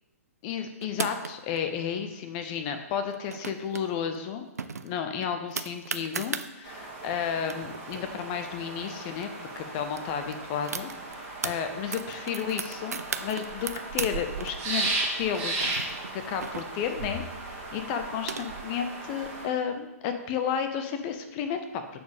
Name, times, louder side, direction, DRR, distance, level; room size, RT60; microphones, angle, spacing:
voice 1, 0.4-4.4 4.8-15.7 16.1-21.8, left 7 dB, 35° left, 7 dB, 0.7 m, -32 dB
sound 1, 0.8-1.6 3.1-3.8 4.1-4.2 4.6-6.5 7.1-7.2 7.4-9.3 9.6-9.7 9.9-11.5 11.9-14.1 14.4-17.0 17.8-18.8, right 5 dB, 80° right, 0.4 m, -36 dB
sound 2, 6.6-19.5, right 2 dB, 35° right, 1.5 m, -36 dB
6.6 x 4.4 x 3.4 m, 0.95 s
figure-of-eight pair, 120°, 8 cm